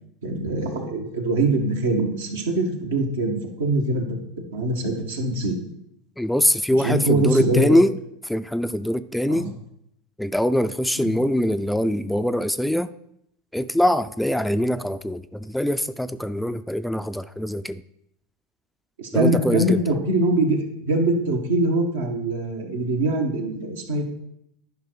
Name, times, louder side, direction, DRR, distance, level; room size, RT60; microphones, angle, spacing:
voice 1, 0.2-4.0 4.5-5.5 6.8-7.8 9.3-9.5 11.0-11.1 19.0-24.0, right 2 dB, 85° right, 1 dB, 1.6 m, -23 dB
voice 2, 6.2-8.0 8.2-9.6 10.2-12.9 13.5-17.8 19.1-19.8, equal, 5° left, 12 dB, 0.3 m, -23 dB
10.5 x 5.3 x 4.7 m, 0.75 s
hypercardioid pair, 95°, 0 cm